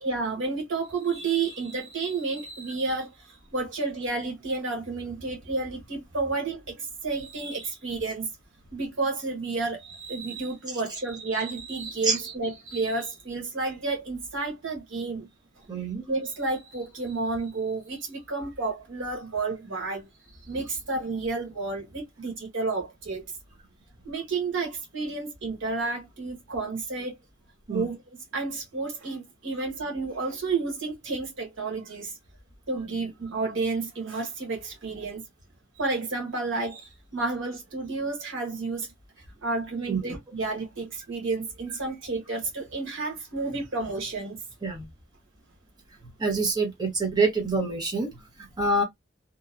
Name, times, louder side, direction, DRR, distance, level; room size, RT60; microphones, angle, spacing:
voice 1, 0.0-8.3 8.7-15.3 15.6-23.2 24.0-27.2 27.7-28.0 28.3-32.2 32.7-35.2 35.7-38.9 39.4-44.4, right 3 dB, 80° right, 1.2 m, -31 dB
voice 2, 15.7-16.0 27.7-27.9 39.9-40.1 44.6-44.9 46.2-48.8, right 3 dB, 20° right, 0.7 m, -26 dB
2.8 x 2.2 x 2.4 m
head